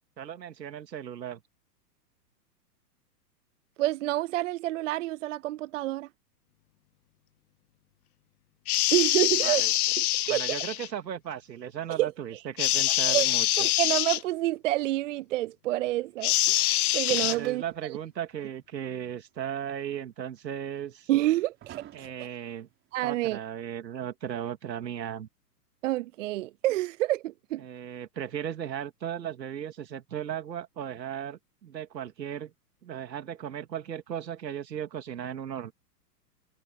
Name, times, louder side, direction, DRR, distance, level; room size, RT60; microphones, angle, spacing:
voice 1, 0.2-1.4 9.4-9.7 10.3-13.5 17.3-21.1 21.9-22.7 23.0-25.3 27.6-32.5 32.8-35.7, right 9 dB, 85° right, 2.9 m, -36 dB
voice 2, 3.8-6.1 8.9-9.6 10.0-10.5 11.9-12.1 12.9-13.3 13.6-17.6 21.1-22.1 22.9-23.4 25.8-27.6, right 16 dB, 50° right, 0.6 m, -28 dB
sound 1, 8.7-10.9 12.6-14.2 16.2-17.3, left 15 dB, 60° left, 1.0 m, -25 dB
sound 2, 17.0-18.0 18.3-18.4 19.4-19.5 20.4-20.5 21.1-22.5 23.3-23.4, right 12 dB, 25° right, 4.7 m, -47 dB
hypercardioid pair, 135°, 49 cm